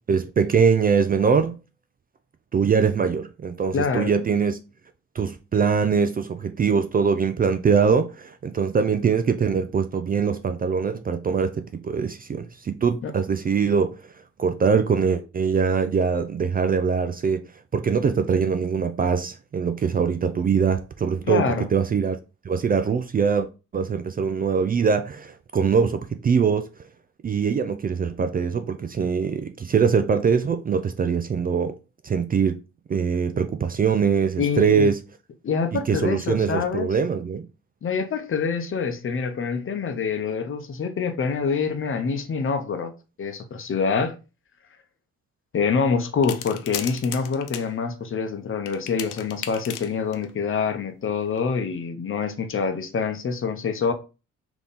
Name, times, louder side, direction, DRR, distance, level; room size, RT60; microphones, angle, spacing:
voice 1, 0.1-1.6 2.5-4.6 5.2-14.0 14.4-17.4 17.7-22.2 22.4-23.5 23.7-26.7 27.2-31.8 32.0-32.6 32.9-35.0 35.7-37.5, right 6 dB, 30° right, 0.4 m, -22 dB
voice 2, 3.7-4.2 13.0-13.1 21.3-21.7 34.4-34.9 35.4-36.9 37.8-42.9 43.2-44.1 45.5-53.9, left 5 dB, 45° left, 0.8 m, -26 dB
sound 1, 46.2-47.7 48.7-50.3 51.2-51.4, left 11 dB, 85° left, 0.5 m, -35 dB
3.5 x 2.9 x 3.9 m
cardioid pair, 90°, 30 cm